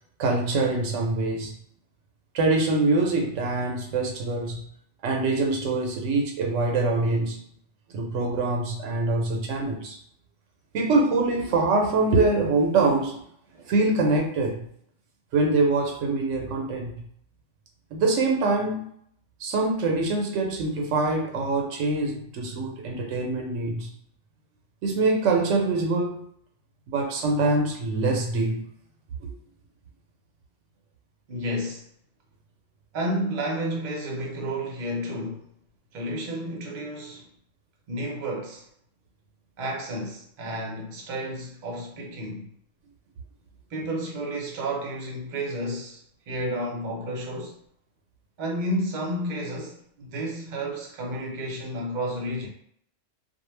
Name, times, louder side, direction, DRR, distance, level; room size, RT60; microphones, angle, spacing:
voice 1, 0.2-1.5 2.3-4.6 5.0-7.4 7.9-10.0 10.7-13.2 13.5-14.7 15.3-17.0 17.9-18.9 19.4-23.9 24.8-26.2 26.9-28.6 29.2-29.3, right 3 dB, 85° right, 0.9 m, -24 dB
voice 2, 31.3-31.9 32.9-35.5 35.9-37.3 37.9-38.7 39.6-42.5 43.7-47.5 48.4-52.5, right 1 dB, 50° right, 0.7 m, -31 dB
2.3 x 2.1 x 3.1 m
omnidirectional pair, 1.3 m